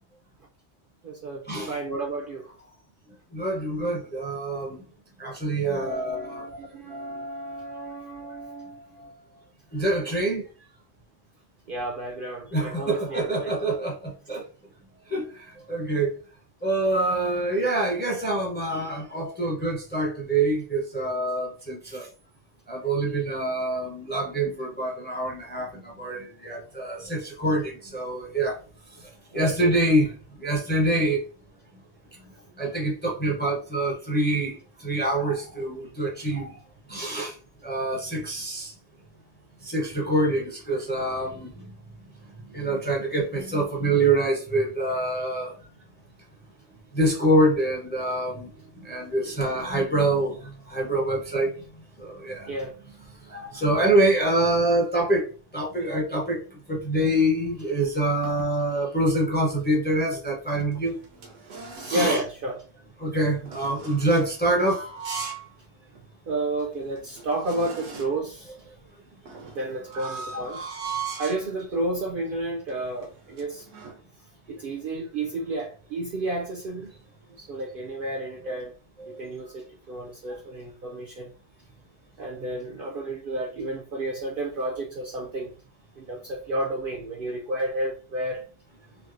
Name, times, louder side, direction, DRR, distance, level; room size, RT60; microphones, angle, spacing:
voice 1, 1.0-2.5 5.6-9.4 11.7-13.6 29.3-29.8 48.6-49.4 52.5-52.8 60.7-60.8 61.5-61.6 61.9-62.6 66.3-68.5 69.5-70.7 71.2-73.7 74.5-76.9 77.4-78.7 79.1-81.3 82.2-85.5 86.0-88.4, right 2 dB, 60° right, 0.6 m, -32 dB
voice 2, 3.3-4.8 5.2-6.4 9.7-10.5 12.5-14.4 15.1-16.1 16.6-22.1 22.7-28.6 29.3-30.1 30.4-31.2 32.6-36.6 36.9-37.4 37.6-38.7 39.6-41.7 42.5-45.5 46.9-48.5 48.8-51.5 52.0-52.5 53.2-55.3 55.5-56.4 56.7-61.0 61.8-62.2 63.0-64.9 69.9-70.0 70.3-70.4 78.4-78.5 79.0-79.2, right 1 dB, 10° left, 0.6 m, -25 dB
sound 1, 60.5-62.2 63.5-65.5 65.9-66.0 66.6-66.7 66.9-68.3 69.3-71.5 72.2-72.4 72.7-74.0, right 5 dB, 85° right, 1.1 m, -38 dB
3.2 x 2.6 x 2.5 m
omnidirectional pair, 1.2 m